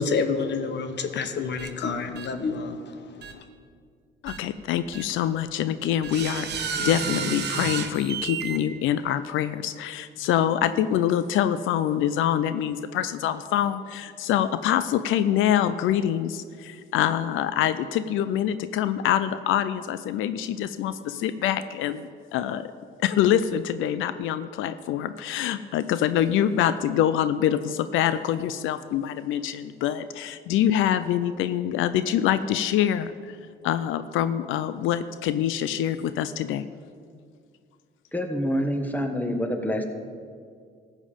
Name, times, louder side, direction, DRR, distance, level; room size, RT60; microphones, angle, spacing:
voice 1, 0.0-3.4, left 4 dB, 60° left, 8 dB, 1.0 m, -29 dB
sound 1, 1.6-1.7 2.1-2.3 3.2-3.3 4.3-4.4 4.9-5.0 6.0-8.6, right 6 dB, 55° right, 1.1 m, -31 dB
voice 2, 4.2-22.7 23.0-33.4 33.6-36.6, left 10 dB, 85° left, 13 dB, 0.4 m, -25 dB
voice 3, 38.1-39.8, equal, 10° left, 5 dB, 1.3 m, -26 dB
14.0 x 7.4 x 5.2 m, 2.1 s
cardioid pair, 90°, 20 cm